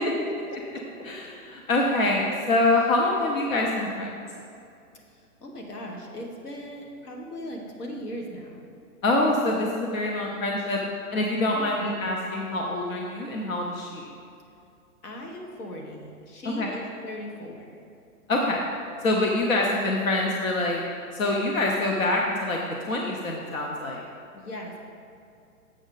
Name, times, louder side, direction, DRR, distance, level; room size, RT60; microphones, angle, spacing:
voice 1, 0.0-1.1 5.1-8.6 11.5-11.9 15.0-17.8 24.3-24.8, left 1 dB, 85° left, 1 dB, 1.6 m, -38 dB
voice 2, 1.0-4.2 9.0-10.8 11.1-14.1 16.4-16.7 18.3-18.6 19.0-20.8 21.1-22.6 22.9-24.0, left 2 dB, 60° left, -1 dB, 0.9 m, -25 dB
7.8 x 6.4 x 3.9 m, 2.6 s
hypercardioid pair, 180°, 45 cm